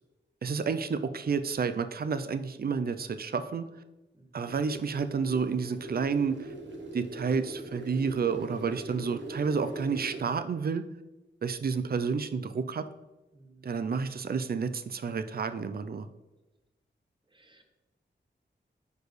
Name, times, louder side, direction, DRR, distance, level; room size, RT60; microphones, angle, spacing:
voice 1, 0.4-3.7 4.3-6.5 6.9-10.9 11.4-12.9 13.6-16.1, right 5 dB, 55° right, 10 dB, 0.5 m, -30 dB
voice 2, 4.1-4.5 13.3-13.7 17.3-17.6, right 2 dB, 25° right, 3 dB, 1.1 m, -58 dB
sound 1, 4.4-10.2, right 2 dB, 75° right, 1.1 m, -42 dB
9.6 x 4.5 x 3.2 m, 1.0 s
wide cardioid pair, 120°, 19 cm